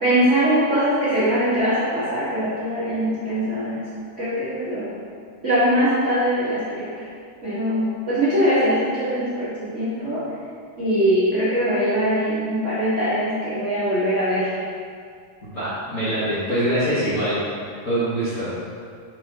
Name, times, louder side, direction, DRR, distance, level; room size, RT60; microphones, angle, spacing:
voice 1, 0.0-3.9 4.2-4.9 5.4-7.1 7.4-10.2 10.8-14.5, equal, 55° right, -11 dB, 0.8 m, -22 dB
voice 2, 15.4-17.4 17.8-18.5, right 1 dB, 40° left, -12 dB, 1.1 m, -23 dB
5.6 x 4.7 x 3.9 m, 2.2 s
omnidirectional pair, 3.3 m